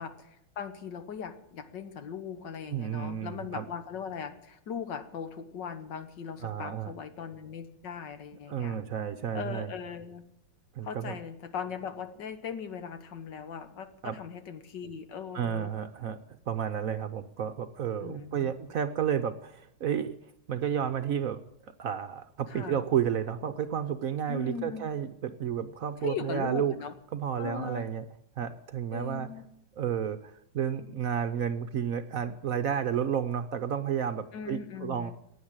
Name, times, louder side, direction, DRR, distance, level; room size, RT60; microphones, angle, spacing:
voice 1, 0.0-8.8 9.3-10.2 10.8-15.7 18.0-18.5 22.5-22.8 24.3-24.8 26.0-26.9 27.4-27.9 28.9-29.5 34.3-35.1, left 6 dB, 75° left, 10 dB, 1.9 m, -39 dB
voice 2, 2.7-3.6 6.4-6.9 8.5-9.7 10.8-11.2 14.0-14.1 15.3-16.2 16.5-20.1 20.5-21.4 21.8-26.7 27.1-28.0 28.4-29.3 29.8-35.1, right 8 dB, 60° right, 11 dB, 1.0 m, -31 dB
16.0 x 9.5 x 8.8 m, 0.80 s
omnidirectional pair, 2.0 m